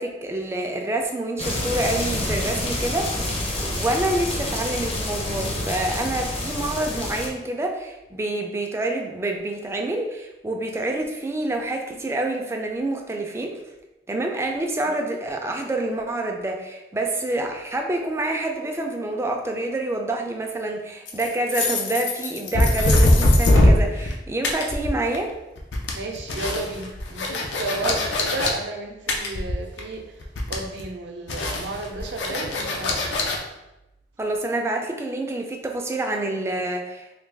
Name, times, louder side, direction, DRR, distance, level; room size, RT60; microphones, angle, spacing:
voice 1, 0.0-13.6 14.1-25.3 27.8-28.0 34.2-37.1, right 2 dB, 15° right, 2 dB, 0.3 m, -27 dB
sound 1, 1.4-7.3, left 1 dB, 30° left, 0.6 m, -28 dB
sound 2, 21.1-24.2 24.4-25.3 25.6-28.5 29.1-30.0 30.2-30.8 31.3-33.4, left 1 dB, 75° left, 0.5 m, -21 dB
voice 2, 25.9-30.0 30.5-33.1, right 2 dB, 75° right, 2 dB, 0.5 m, -32 dB
3.2 x 2.2 x 3.3 m, 0.97 s
head